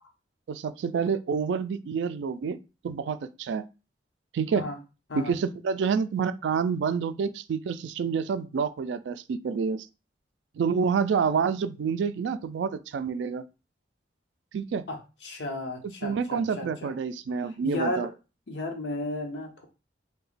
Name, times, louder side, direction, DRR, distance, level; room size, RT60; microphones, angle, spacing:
voice 1, 0.5-2.6 2.8-3.6 4.3-4.6 5.1-9.9 10.5-13.4 14.5-14.8 15.8-18.1, right 6 dB, 85° right, 0.3 m, -28 dB
voice 2, 14.9-16.9 17.6-18.1 18.5-19.7, left 1 dB, 85° left, 0.9 m, -34 dB
2.9 x 2.2 x 4.0 m
head